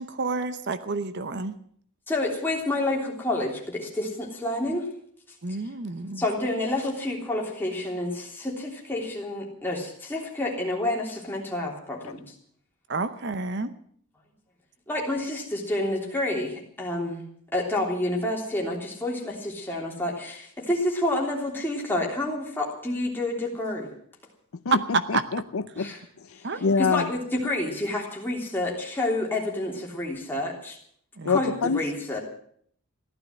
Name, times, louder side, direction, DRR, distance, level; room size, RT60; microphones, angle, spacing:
voice 1, 0.0-1.5 5.4-6.3 12.9-13.7 24.7-24.8 25.1-25.2 26.4-26.7 31.2-31.4, right 4 dB, 50° right, 12 dB, 0.8 m, -29 dB
voice 2, 2.1-4.9 6.2-12.2 14.9-17.2 17.5-23.9 25.8-26.0 26.5-30.8 31.3-32.2, left 1 dB, 10° left, -2 dB, 3.3 m, -29 dB
voice 3, 24.7-25.9 26.6-27.1 31.2-31.8, left 5 dB, 75° left, 13 dB, 0.6 m, -25 dB
15.0 x 11.5 x 7.5 m, 0.62 s
head